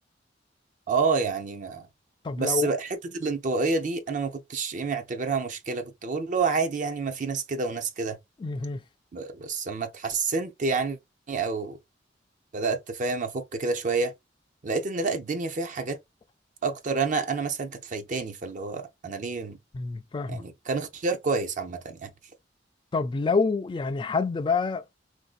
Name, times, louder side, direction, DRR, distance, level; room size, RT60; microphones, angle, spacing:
voice 1, 0.9-1.9 2.4-2.9 3.1-8.2 9.1-11.0 11.3-11.8 12.5-14.1 14.6-16.0 16.6-19.6 20.3-22.1, right 4 dB, 45° right, 0.5 m, -28 dB
voice 2, 2.2-2.7 8.4-8.8 19.7-20.4 22.9-24.9, left 4 dB, 25° left, 0.3 m, -27 dB
3.8 x 2.6 x 2.4 m
head